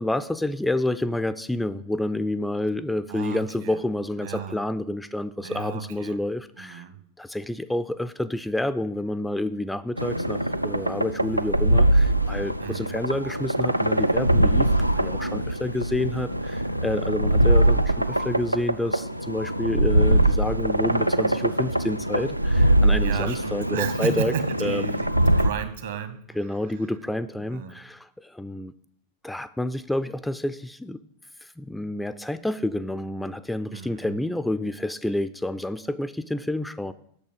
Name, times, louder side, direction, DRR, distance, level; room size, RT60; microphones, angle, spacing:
voice 1, 0.0-6.8 7.2-24.3 24.6-25.0 26.4-28.7 29.2-31.0 31.4-36.9, left 1 dB, 5° left, 13 dB, 0.3 m, -29 dB
voice 2, 3.1-3.8 4.2-4.6 5.4-6.2 6.6-6.9 12.6-12.9 23.0-26.7 27.4-27.8 33.7-34.2, right 9 dB, 60° right, 10 dB, 1.1 m, -34 dB
sound 1, 10.0-25.5, right 1 dB, 90° right, 0.3 m, -22 dB
8.3 x 6.7 x 5.2 m, 0.67 s
figure-of-eight pair, 90°, 0 cm